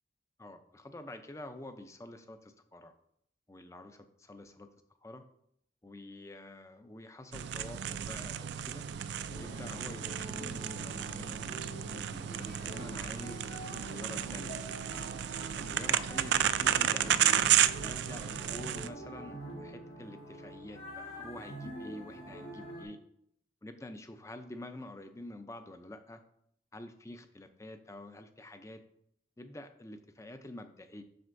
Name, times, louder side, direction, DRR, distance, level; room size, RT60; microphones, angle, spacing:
voice 1, 0.4-2.9 3.5-4.7 5.0-5.2 5.8-8.8 9.4-11.4 11.8-14.6 15.6-17.2 17.8-23.0 23.6-26.2 26.7-28.8 29.4-31.0, left 1 dB, 15° left, 8 dB, 0.5 m, -47 dB
sound 1, 7.3-18.9, right 10 dB, 65° right, 0.3 m, -32 dB
sound 2, 9.3-22.8, right 1 dB, 80° left, 2.3 m, -46 dB
7.7 x 6.4 x 2.6 m, 0.70 s
head